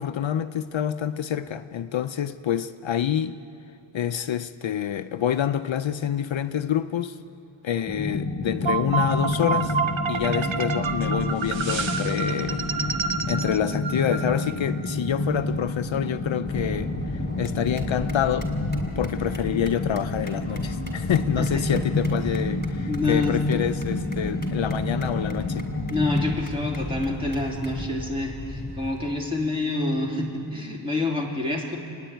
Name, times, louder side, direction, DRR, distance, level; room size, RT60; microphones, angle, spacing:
voice 1, 0.0-3.4 3.9-7.2 7.6-9.7 10.1-12.6 13.3-18.5 19.0-25.7, left 9 dB, 65° left, 0.6 m, -27 dB
sound 1, 7.9-26.4, left 2 dB, 35° left, 1.3 m, -29 dB
sound 2, 8.6-14.7, right 5 dB, 65° right, 1.1 m, -29 dB
sound 3, 16.4-29.1, left 2 dB, 20° left, 3.6 m, -35 dB
voice 2, 22.9-23.3 25.9-31.8, left 2 dB, 10° right, 3.1 m, -27 dB
27.0 x 10.5 x 9.1 m
wide cardioid pair, 115°, 50 cm